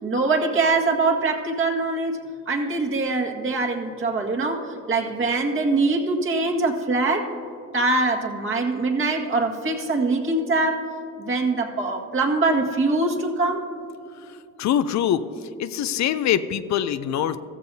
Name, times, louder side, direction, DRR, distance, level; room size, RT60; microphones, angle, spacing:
voice 1, 0.0-7.3 7.7-10.8 11.2-13.6, right 3 dB, 40° right, 1 dB, 1.9 m, -23 dB
voice 2, 14.6-15.2 15.6-17.4, left 10 dB, 65° left, 12 dB, 0.6 m, -23 dB
15.0 x 15.0 x 2.7 m, 2.5 s
cardioid pair, 90°, 30 cm